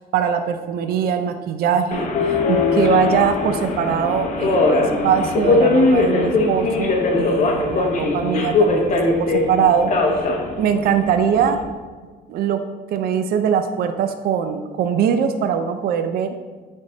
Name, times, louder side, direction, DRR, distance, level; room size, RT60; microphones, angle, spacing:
voice 1, 0.1-9.9 10.6-11.6 12.3-12.6 12.9-16.4, right 7 dB, 65° right, 8 dB, 0.5 m, -21 dB
Subway metro underground, 1.9-11.6, left 3 dB, 45° left, 1.1 m, -20 dB
9.0 x 3.6 x 3.9 m, 1.4 s
cardioid pair, 110°, 17 cm